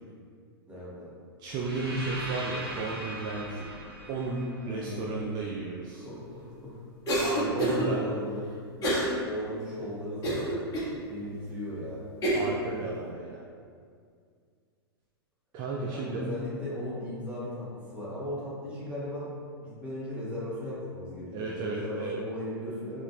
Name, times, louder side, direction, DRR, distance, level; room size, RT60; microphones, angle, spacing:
voice 1, 0.7-1.1 4.6-5.5 5.9-6.8 7.5-8.5 9.2-10.6 11.1-12.1 15.9-19.3 19.6-23.0, left 1 dB, 10° right, -8 dB, 1.3 m, -37 dB
voice 2, 1.4-3.7 4.1-6.1 7.2-8.1 12.3-13.4 15.5-16.3 21.3-22.2, right 3 dB, 35° right, -3 dB, 0.4 m, -33 dB
sound 1, 1.5-5.5, right 1 dB, 70° right, 0.9 m, -40 dB
Cough, 7.1-7.9 8.8-9.1 9.6-9.7 10.2-10.9 11.5-11.6 12.2-12.5, right 1 dB, 30° left, 1.4 m, -27 dB
5.0 x 3.0 x 2.3 m, 2.2 s
figure-of-eight pair, 100°, 13 cm